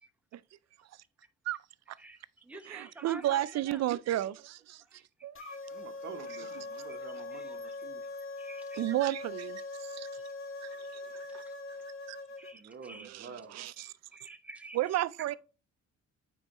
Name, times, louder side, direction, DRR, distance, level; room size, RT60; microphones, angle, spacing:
voice 1, 2.0-3.8 4.8-5.0 5.4-5.8 6.3-6.4 6.7-7.8 8.2-8.8 10.2-10.3 10.5-10.8 11.4-11.5 12.4-13.1 13.8-15.0, right 2 dB, 5° right, 0.8 m, -51 dB
voice 2, 2.7-4.8 5.2-5.4 8.8-10.1 10.6-11.4 12.1-12.2 13.0-13.9 14.7-15.4, right 14 dB, 60° right, 0.5 m, -33 dB
sound 1, 5.3-12.5, left 3 dB, 45° left, 1.5 m, -42 dB
voice 3, 5.7-8.2 12.5-13.5, right 5 dB, 35° right, 0.9 m, -48 dB
8.7 x 4.7 x 2.9 m
cardioid pair, 90°, 30 cm